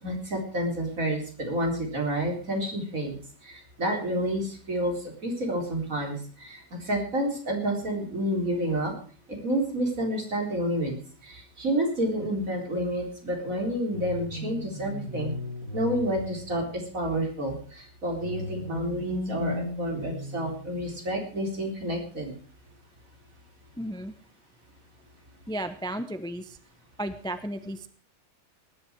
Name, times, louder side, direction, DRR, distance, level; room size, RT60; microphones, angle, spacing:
voice 1, 0.0-3.1 3.4-4.9 5.2-8.9 9.3-11.0 11.2-15.3 15.7-22.3, right 1 dB, 50° right, 2 dB, 4.4 m, -29 dB
sound 1, 13.9-17.0 18.2-21.1, left 2 dB, 55° left, 4.2 m, -37 dB
voice 2, 23.8-24.1 25.5-26.6 27.0-27.9, right 1 dB, 5° left, 10 dB, 0.6 m, -34 dB
19.0 x 10.5 x 4.7 m, 0.41 s
omnidirectional pair, 1.8 m